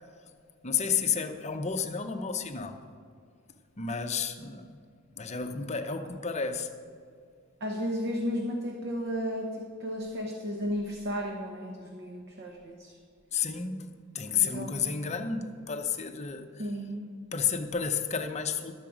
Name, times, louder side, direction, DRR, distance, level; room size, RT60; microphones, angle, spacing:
voice 1, 0.6-2.8 3.8-4.8 5.2-6.7 13.3-16.7 17.3-18.7, left 6 dB, 35° left, 7 dB, 0.7 m, -31 dB
voice 2, 7.6-13.0 14.3-14.9 16.6-17.2, equal, 55° right, 1 dB, 1.0 m, -34 dB
12.5 x 7.4 x 5.0 m, 2.2 s
head